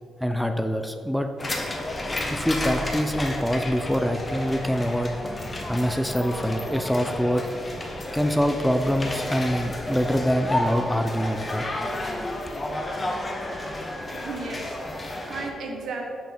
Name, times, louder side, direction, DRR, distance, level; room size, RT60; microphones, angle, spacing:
voice 1, 0.2-1.3 2.3-5.1 5.7-7.5 8.1-11.7, equal, ahead, 6 dB, 0.4 m, -25 dB
sound 1, 1.4-15.5, left 1 dB, 20° left, 0.8 m, -31 dB
voice 2, 14.1-16.1, right 3 dB, 75° right, 1 dB, 1.1 m, -35 dB
5.6 x 4.3 x 5.9 m, 2.3 s
cardioid pair, 115°, 0 cm